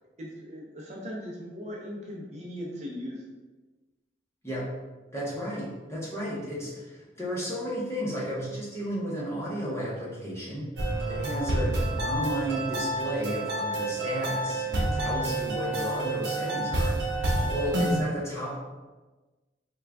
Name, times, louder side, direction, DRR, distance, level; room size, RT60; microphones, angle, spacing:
voice 1, 0.2-3.3 17.3-17.7, equal, 40° right, -3 dB, 0.7 m, -39 dB
voice 2, 5.1-10.7 11.1-17.0 17.5-18.6, equal, 15° left, -6 dB, 0.8 m, -33 dB
sound 1, 10.8-18.0, right 2 dB, 90° right, 0.8 m, -29 dB
3.6 x 2.3 x 3.3 m, 1.2 s
head